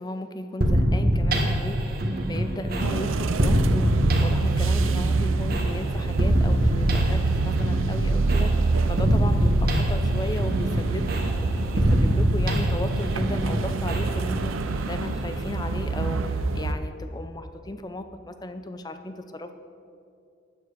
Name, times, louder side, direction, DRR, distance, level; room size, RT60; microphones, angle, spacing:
voice 1, 0.0-1.8 2.3-14.6 14.9-19.5, left 1 dB, 20° left, 9 dB, 0.5 m, -35 dB
sound 1, 0.6-16.2, equal, 50° right, 1.4 m, -25 dB
sound 2, 2.8-16.7, right 3 dB, 85° right, 0.6 m, -26 dB
13.5 x 9.4 x 5.1 m, 2.6 s
head